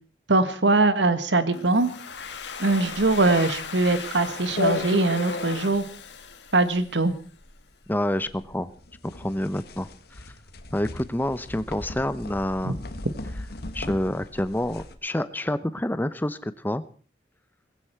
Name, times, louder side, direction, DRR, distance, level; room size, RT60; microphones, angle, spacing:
voice 1, 0.3-1.9 2.6-5.8 6.5-7.1 12.6-12.7, right 2 dB, 80° right, 11 dB, 1.5 m, -22 dB
Domestic sounds home sounds, 1.5-7.2, left 5 dB, 75° left, 1.9 m, -37 dB
sound 1, 2.2-14.9, left 3 dB, 60° left, 1.5 m, -36 dB
voice 2, 7.9-8.7 9.1-9.9 10.7-12.8 13.7-16.8, left 1 dB, 10° left, 14 dB, 0.7 m, -28 dB
19.5 x 16.0 x 4.5 m, 0.40 s
head